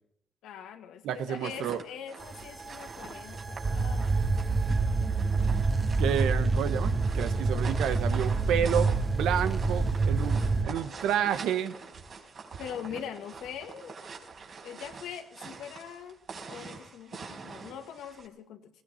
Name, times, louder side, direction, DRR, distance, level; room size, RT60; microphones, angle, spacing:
voice 1, 0.4-4.2 12.6-14.0 14.6-16.2 16.5-18.8, left 8 dB, 85° left, 6 dB, 1.9 m, -42 dB
voice 2, 1.0-1.8 6.0-11.8, right 9 dB, 85° right, 11 dB, 1.2 m, -30 dB
sound 1, 1.2-18.3, right 4 dB, 55° right, 4.2 m, -45 dB
sound 2, 2.2-10.7, right 3 dB, 30° right, 1.5 m, -27 dB
18.5 x 17.0 x 4.4 m, 0.71 s
cardioid pair, 90°, 0 cm